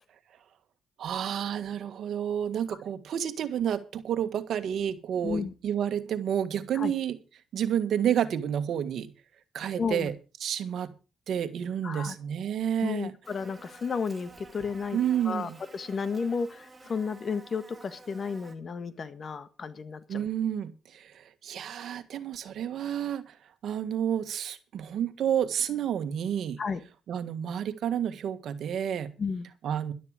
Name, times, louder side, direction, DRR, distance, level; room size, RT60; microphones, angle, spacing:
voice 1, 1.0-7.2 7.5-9.1 9.5-10.1 10.4-10.9 11.3-13.1 14.9-15.6 20.1-23.4 23.6-26.6 27.1-29.1 29.6-29.9, right 9 dB, 70° right, 10 dB, 1.7 m, -30 dB
voice 2, 9.8-10.1 11.8-12.1 12.8-15.0 15.2-20.3 26.6-26.8 29.2-29.5, left 5 dB, 45° left, 13 dB, 1.4 m, -32 dB
Buzz, 13.2-18.6, right 3 dB, 20° right, 2.7 m, -51 dB
13.0 x 12.0 x 5.0 m, 0.32 s
cardioid pair, 90°, 0 cm